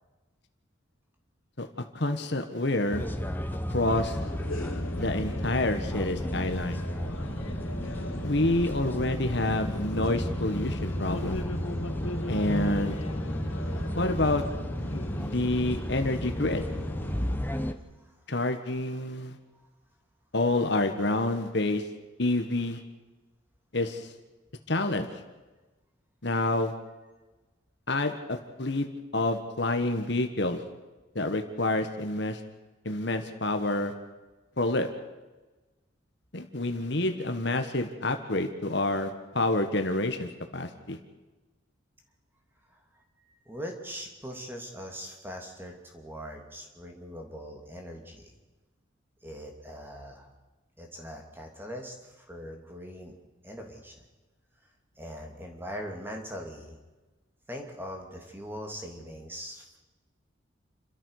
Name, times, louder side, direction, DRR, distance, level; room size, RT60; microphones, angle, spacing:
voice 1, 1.9-3.1 3.7-4.2 5.0-6.8 8.2-11.4 12.3-13.0 13.9-14.4 15.2-16.6 18.3-19.4 20.3-21.8 22.2-22.8 23.7-24.1 24.7-25.1 26.2-26.7 27.9-28.9 29.1-30.6 31.1-32.4 32.8-33.9 34.6-34.9 36.3-41.0, left 2 dB, 55° left, 7 dB, 1.6 m, -28 dB
sound 1, 2.9-17.7, equal, 10° left, 0.9 m, -33 dB
sound 2, 3.9-17.4, left 2 dB, 85° left, 1.5 m, -40 dB
voice 2, 17.5-18.2 19.5-19.7 42.7-48.4 49.2-50.3 50.8-53.1 53.4-54.1 55.0-56.8 57.5-59.8, equal, 10° right, 2 dB, 2.7 m, -42 dB
29.5 x 13.5 x 6.6 m, 1.2 s
head